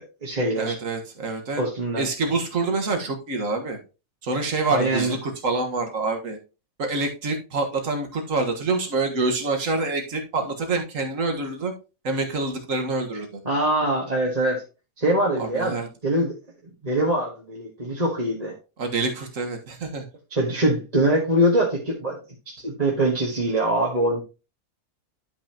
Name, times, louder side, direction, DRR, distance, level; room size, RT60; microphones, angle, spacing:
voice 1, 0.0-0.7 1.6-2.0 4.7-5.1 13.4-14.6 15.0-16.4 16.6-18.5 20.3-22.2 22.6-24.2, right 1 dB, 30° right, -3 dB, 1.6 m, -23 dB
voice 2, 0.6-1.6 2.0-3.8 4.2-6.4 6.8-11.7 12.0-13.4 15.4-15.9 18.8-20.1, right 3 dB, 65° right, 3 dB, 1.9 m, -26 dB
11.5 x 5.5 x 2.9 m, 0.31 s
omnidirectional pair, 1.5 m